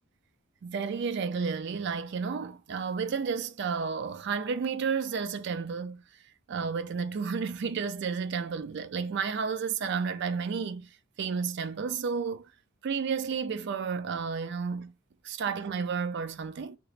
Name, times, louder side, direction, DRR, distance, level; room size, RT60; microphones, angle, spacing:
voice 1, 0.6-6.0 6.5-10.9 11.2-12.4 12.8-14.9 15.2-16.8, right 5 dB, 60° right, 0.4 m, -31 dB
2.9 x 2.5 x 3.1 m
head